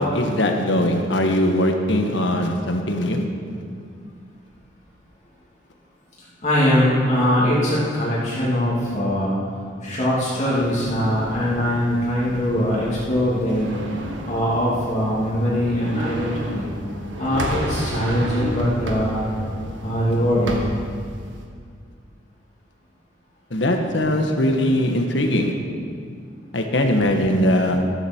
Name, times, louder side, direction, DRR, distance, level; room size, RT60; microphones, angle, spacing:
voice 1, 0.0-3.3 23.5-25.6 26.5-27.9, left 1 dB, 70° left, 3 dB, 1.5 m, -20 dB
voice 2, 6.4-9.3 9.8-13.8 14.2-16.7 17.2-19.3 19.8-20.6, equal, 40° left, -7 dB, 2.7 m, -21 dB
sound 1, 10.5-21.5, equal, 75° right, 1.7 m, -32 dB
13.5 x 13.5 x 4.6 m, 2.2 s
head